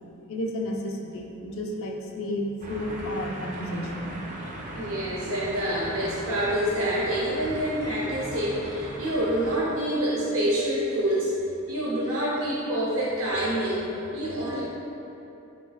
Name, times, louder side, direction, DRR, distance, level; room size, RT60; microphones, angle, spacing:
voice 1, 0.3-4.7, left 1 dB, 75° left, 0 dB, 0.5 m, -32 dB
sound 1, 2.6-9.6, right 1 dB, 35° right, 0.5 m, -38 dB
voice 2, 4.7-11.3 11.7-14.6, right 1 dB, 85° right, -7 dB, 0.7 m, -27 dB
4.8 x 3.6 x 2.3 m, 3.0 s
head